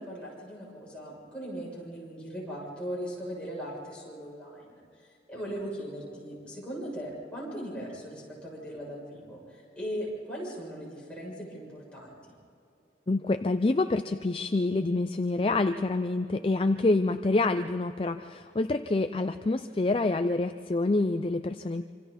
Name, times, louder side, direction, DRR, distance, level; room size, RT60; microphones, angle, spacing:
voice 1, 0.0-12.4, equal, 5° left, -6 dB, 7.1 m, -39 dB
voice 2, 13.1-21.8, left 2 dB, 30° left, 9 dB, 0.4 m, -27 dB
26.5 x 26.5 x 4.2 m, 2.6 s
head